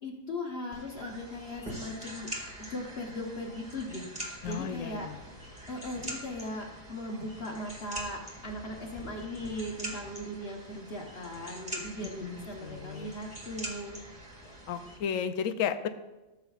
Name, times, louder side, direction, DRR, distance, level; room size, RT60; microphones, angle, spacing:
voice 1, 0.0-2.3 2.6-4.1 4.4-5.1 5.7-14.0, left 1 dB, 50° left, 0 dB, 1.3 m, -38 dB
sound 1, 0.7-15.0, equal, 5° right, 2.0 m, -44 dB
voice 2, 4.4-5.2 12.2-13.1 14.7-15.9, left 8 dB, 80° left, 10 dB, 1.0 m, -33 dB
16.5 x 7.4 x 2.4 m, 1.1 s
omnidirectional pair, 1.4 m